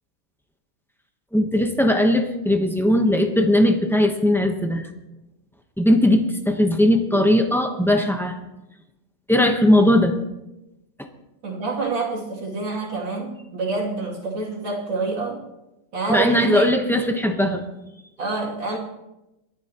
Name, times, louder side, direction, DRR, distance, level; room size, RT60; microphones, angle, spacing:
voice 1, 1.3-4.8 5.8-8.4 9.3-10.1 16.1-17.6, left 1 dB, 5° left, 3 dB, 0.4 m, -19 dB
voice 2, 11.4-15.4 15.9-16.8 18.2-18.8, right 3 dB, 85° right, -3 dB, 3.4 m, -27 dB
28.5 x 11.0 x 3.0 m, 0.95 s
omnidirectional pair, 2.1 m